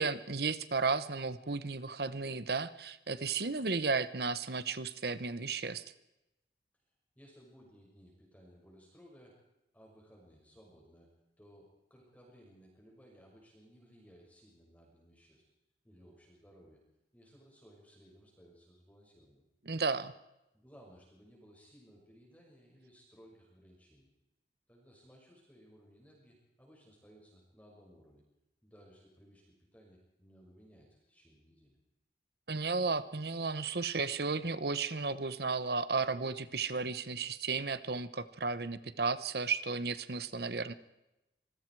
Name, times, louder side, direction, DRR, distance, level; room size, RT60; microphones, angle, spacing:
voice 1, 0.0-5.8 19.7-20.1 32.5-40.7, right 4 dB, 60° right, 14 dB, 1.0 m, -34 dB
voice 2, 7.2-9.4 9.7-15.4 15.8-16.8 17.1-19.4 20.5-24.1 24.7-28.2 28.6-31.8, equal, 10° left, -2 dB, 6.0 m, -60 dB
26.5 x 21.0 x 4.8 m, 0.93 s
head